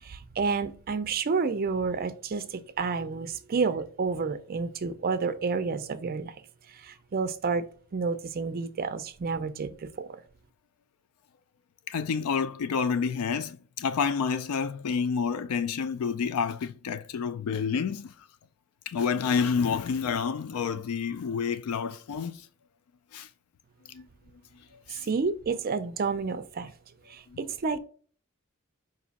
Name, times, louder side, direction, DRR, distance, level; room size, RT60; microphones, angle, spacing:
voice 1, 0.0-6.3 6.7-7.7 7.9-10.2 25.0-26.7 27.1-27.8, right 4 dB, 45° right, 0.4 m, -30 dB
voice 2, 11.9-18.1 18.9-22.5 23.1-23.3 23.9-24.1 24.9-25.1 27.3-27.4, left 6 dB, 85° left, 0.4 m, -29 dB
5.0 x 2.6 x 4.0 m
head